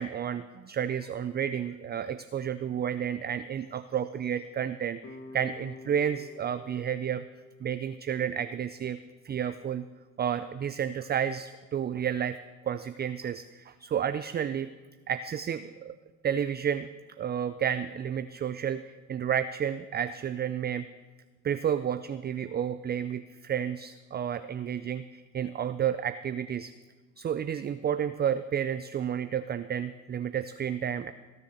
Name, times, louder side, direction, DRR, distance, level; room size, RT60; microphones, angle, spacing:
voice 1, 0.0-7.2 7.6-9.0 9.2-9.8 10.2-12.4 12.6-14.7 15.1-15.9 16.2-16.9 17.2-20.9 21.4-26.7 27.2-31.1, right 8 dB, 25° right, 12 dB, 0.5 m, -31 dB
sound 1, 5.0-10.1, left 2 dB, 35° left, 1.5 m, -51 dB
16.0 x 7.0 x 6.6 m, 1.3 s
hypercardioid pair, 70°, 41 cm